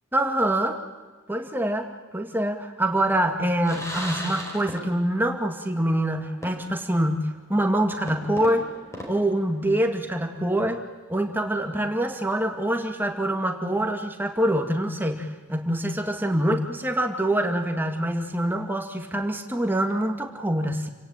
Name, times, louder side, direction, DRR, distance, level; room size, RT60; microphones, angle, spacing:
voice 1, 0.1-0.8 1.3-8.7 9.1-10.8 11.1-20.9, right 1 dB, 10° right, 4 dB, 2.1 m, -25 dB
sound 1, 3.6-5.2 5.5-5.6 6.4-6.9 7.3-7.4 8.1-10.1, equal, 15° left, 4.4 m, -37 dB
28.5 x 17.0 x 8.9 m, 1.4 s
head